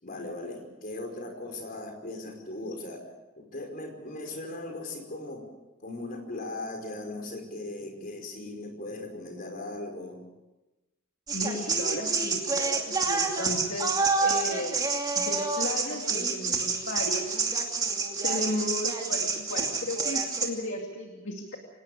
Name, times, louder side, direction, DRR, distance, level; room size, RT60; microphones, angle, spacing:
voice 1, 0.0-3.1 3.4-5.5 5.8-10.2, left 2 dB, 40° left, 3 dB, 5.1 m, -38 dB
voice 2, 11.3-14.9 15.2-17.4 18.2-21.6, left 1 dB, 60° left, 1 dB, 2.5 m, -35 dB
sound 1, 11.3-20.5, right 4 dB, 20° right, 2.6 m, -28 dB
25.5 x 18.5 x 6.8 m, 1.0 s
head